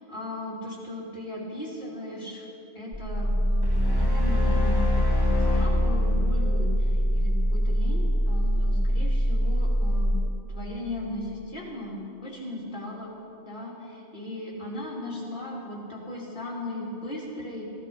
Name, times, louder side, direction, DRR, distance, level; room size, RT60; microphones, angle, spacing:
voice 1, 0.1-2.4 2.7-10.2 10.5-13.1 13.4-17.6, left 1 dB, 40° left, -5 dB, 3.0 m, -37 dB
sound 1, 2.9-10.1, equal, 10° right, 2.4 m, -24 dB
sound 2, 3.6-7.0, left 4 dB, 20° left, 1.5 m, -28 dB
15.0 x 11.5 x 5.3 m, 3.0 s
omnidirectional pair, 1.2 m